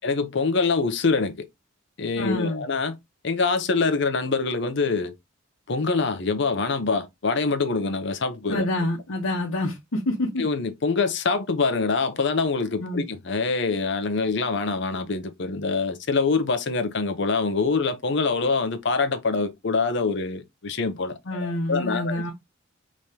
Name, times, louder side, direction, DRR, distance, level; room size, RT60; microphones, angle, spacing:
voice 1, 0.0-1.5 2.0-2.9 3.2-5.1 5.7-8.7 10.4-22.3, left 4 dB, 65° left, 0.7 m, -25 dB
voice 2, 2.2-2.6 8.5-10.4 12.8-13.0 21.3-22.3, left 1 dB, 90° left, 1.0 m, -27 dB
5.0 x 3.1 x 2.8 m
head